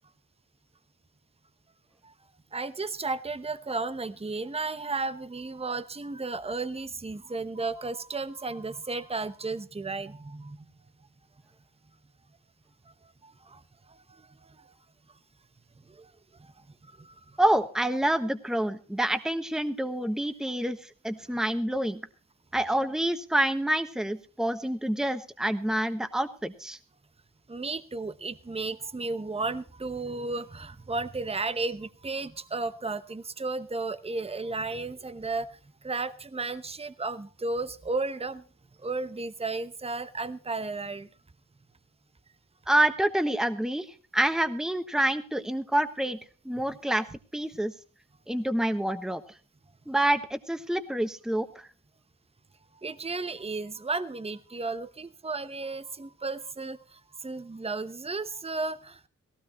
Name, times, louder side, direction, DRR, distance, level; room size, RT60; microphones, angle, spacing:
voice 1, 2.5-10.7 13.2-13.6 13.9-14.7 15.9-16.1 16.4-16.5 16.8-17.4 27.5-38.4 38.8-41.1 52.8-59.1, right 3 dB, 20° right, 13 dB, 0.9 m, -34 dB
voice 2, 17.4-22.0 22.5-26.8 42.7-43.9 44.1-46.2 46.4-47.0 47.3-47.7 48.3-49.2 49.9-51.7, right 1 dB, ahead, 9 dB, 1.3 m, -27 dB
17.5 x 16.0 x 3.0 m, 0.36 s
cardioid pair, 50°, 33 cm